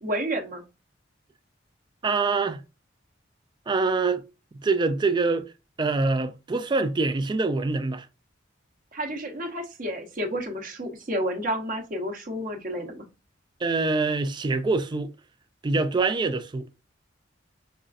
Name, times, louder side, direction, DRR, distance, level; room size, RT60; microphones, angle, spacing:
voice 1, 0.0-0.6 8.9-13.0, equal, 45° right, 0.8 m, -30 dB
voice 2, 2.0-2.6 3.7-4.2 4.6-5.5 5.8-8.1 13.6-15.1 15.6-16.7, right 3 dB, 25° right, 0.3 m, -25 dB
5.3 x 2.4 x 2.4 m
head